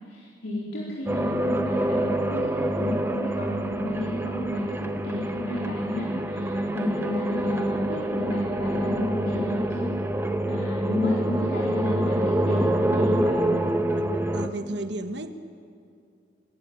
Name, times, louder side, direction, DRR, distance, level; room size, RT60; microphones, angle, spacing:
voice 1, 0.1-9.9 10.5-13.5, left 1 dB, 75° left, -6 dB, 4.2 m, -32 dB
sound 1, 1.1-14.5, right 1 dB, 10° right, 1.0 m, -26 dB
voice 2, 13.9-15.3, right 2 dB, 65° right, 8 dB, 1.3 m, -34 dB
25.0 x 14.5 x 8.8 m, 2.4 s
head